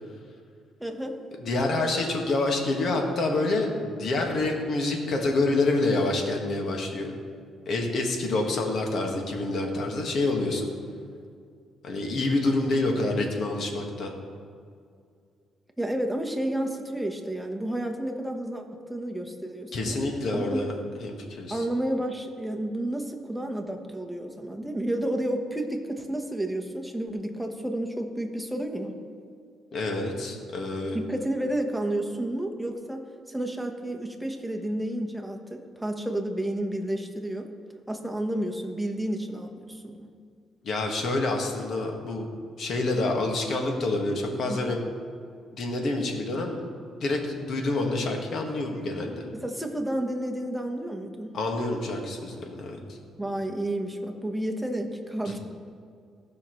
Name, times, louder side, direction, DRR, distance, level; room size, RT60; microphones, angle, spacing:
voice 1, 0.8-1.2 15.8-20.0 20.3-20.6 21.5-28.9 30.9-37.5 37.9-40.1 44.5-44.6 49.3-51.3 53.2-55.4, right 1 dB, 5° right, 3 dB, 1.1 m, -31 dB
voice 2, 1.4-7.1 7.6-10.7 11.8-14.1 19.7-20.7 21.0-21.6 29.7-31.0 40.6-42.3 42.6-44.8 45.5-46.6 47.0-49.2 51.3-52.8 55.2-55.4, left 2 dB, 60° left, 1 dB, 1.7 m, -27 dB
16.0 x 5.6 x 3.2 m, 2.3 s
cardioid pair, 90°, 0 cm